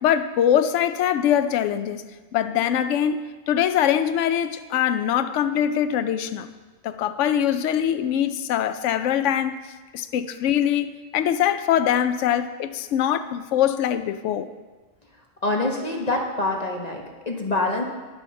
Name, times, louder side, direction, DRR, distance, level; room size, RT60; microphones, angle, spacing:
voice 1, 0.0-2.0 2.3-6.5 6.8-9.6 9.9-14.5, left 10 dB, 75° left, 10 dB, 0.9 m, -23 dB
voice 2, 15.4-17.8, left 2 dB, 35° left, 1 dB, 1.2 m, -25 dB
10.0 x 7.7 x 6.4 m, 1.3 s
omnidirectional pair, 1.3 m